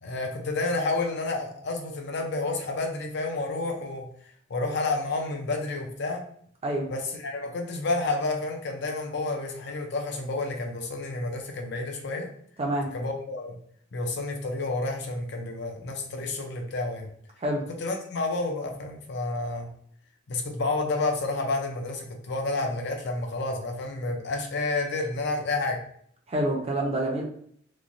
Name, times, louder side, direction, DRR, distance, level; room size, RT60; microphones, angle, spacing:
voice 1, 0.0-4.1 4.5-6.2 6.9-12.3 12.9-13.6 13.9-17.1 17.8-19.7 20.3-25.8, left 2 dB, 60° left, 3 dB, 0.5 m, -30 dB
voice 2, 12.6-12.9 17.4-17.6 26.3-27.2, right 1 dB, 30° right, 0 dB, 0.5 m, -27 dB
3.1 x 2.2 x 2.6 m, 0.64 s
head